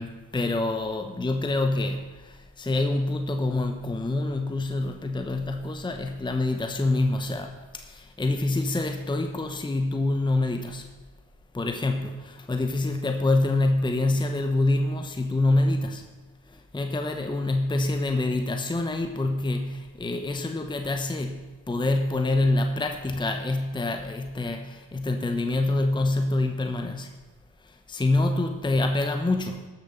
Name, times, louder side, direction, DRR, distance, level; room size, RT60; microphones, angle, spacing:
voice 1, 0.0-10.9 11.5-16.1 16.5-27.1 27.6-29.7, left 2 dB, 10° left, 5 dB, 0.9 m, -26 dB
11.5 x 7.0 x 5.6 m, 1.3 s
supercardioid pair, 55°, 43 cm